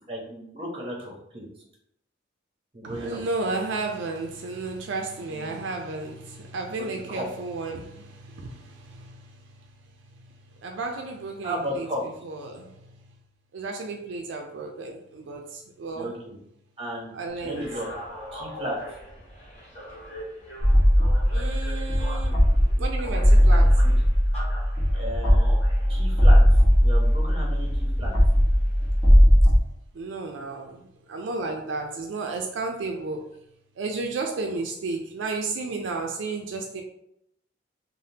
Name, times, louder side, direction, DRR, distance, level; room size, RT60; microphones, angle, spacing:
voice 1, 0.1-1.4 2.7-3.2 5.3-5.6 7.1-7.2 11.4-12.0 15.9-16.4 16.8-17.1 17.4-17.9 18.3-18.9 24.9-25.5 25.9-26.4 26.8-28.1, equal, 30° right, -1 dB, 0.8 m, -34 dB
voice 2, 2.8-9.4 10.6-12.7 13.5-16.1 17.1-17.7 21.3-22.3 22.8-23.8 29.9-30.8 31.1-33.3 33.8-36.8, right 3 dB, 80° right, 2 dB, 0.4 m, -33 dB
sound 1, 17.3-29.2, equal, 35° left, 1.2 m, -42 dB
sound 2, 20.6-29.6, equal, 15° left, 0.8 m, -18 dB
3.3 x 2.0 x 2.7 m, 0.75 s
head